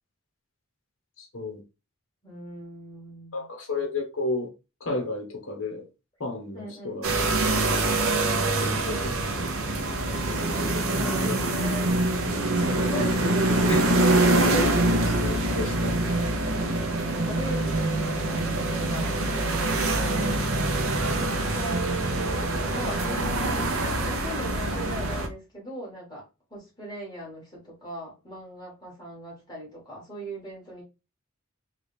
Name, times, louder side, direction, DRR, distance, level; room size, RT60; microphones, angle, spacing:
voice 1, 1.2-1.6 3.3-4.5 4.8-5.9 6.2-7.0 8.6-9.1 10.3-11.4 12.7-13.3 13.7-14.7 15.0-16.2 21.0-21.2, left 2 dB, 60° left, 1.2 m, -33 dB
voice 2, 2.2-3.5 6.5-7.0 8.6-9.2 10.9-12.0 12.6-14.5 17.1-20.3 21.0-23.7 24.1-26.2 26.5-30.8, right 1 dB, 20° left, 2.0 m, -39 dB
sound 1, 7.0-25.3, right 2 dB, 80° right, 0.7 m, -25 dB
3.8 x 2.5 x 3.3 m
head